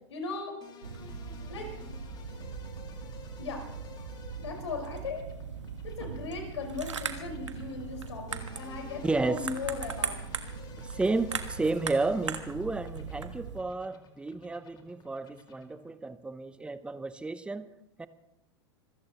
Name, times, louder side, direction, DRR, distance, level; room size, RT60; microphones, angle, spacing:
voice 1, 0.1-0.6 1.5-1.7 3.4-3.6 4.4-5.3 5.8-10.2, left 4 dB, 75° left, 5.0 m, -37 dB
sound 1, 0.6-16.0, left 6 dB, 30° left, 2.4 m, -53 dB
sound 2, 0.8-13.6, right 5 dB, 90° right, 1.4 m, -39 dB
voice 2, 9.0-9.5 10.8-17.7 18.0-18.1, right 3 dB, 5° right, 0.8 m, -32 dB
26.5 x 15.0 x 3.0 m
hypercardioid pair, 100°, 15 cm